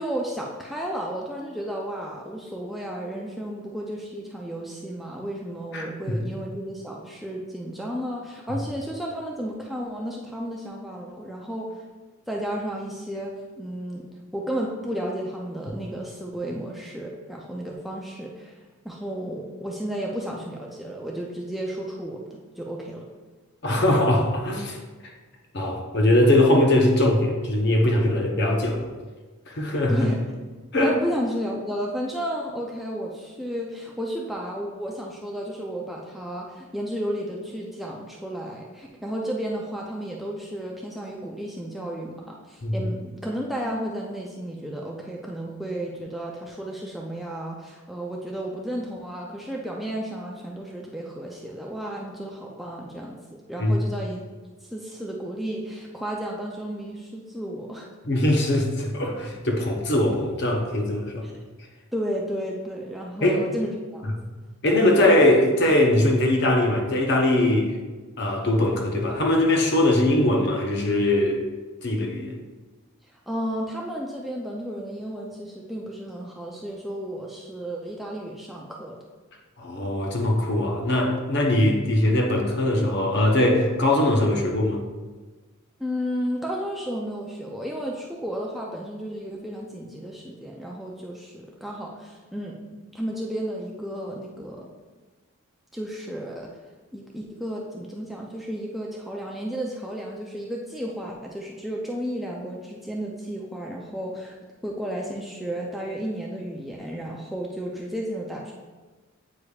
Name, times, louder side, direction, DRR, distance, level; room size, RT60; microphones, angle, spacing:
voice 1, 0.0-11.8 12.3-22.2 22.6-23.1 29.9-30.2 30.8-54.2 54.6-57.9 61.2-61.3 61.9-64.1 73.1-79.0 85.8-92.6 92.9-94.7 95.7-96.5 96.9-104.3 104.6-108.5, equal, ahead, -3 dB, 0.4 m, -33 dB
voice 2, 5.7-6.1 15.7-15.8 23.6-24.8 25.0-25.1 25.5-28.8 29.5-30.0 30.7-30.9 42.6-42.9 53.6-53.9 58.1-61.3 63.2-63.4 64.6-67.8 68.2-71.4 71.8-72.3 79.6-84.8, left 1 dB, 50° left, 1 dB, 0.8 m, -21 dB
8.3 x 4.9 x 2.3 m, 1.3 s
head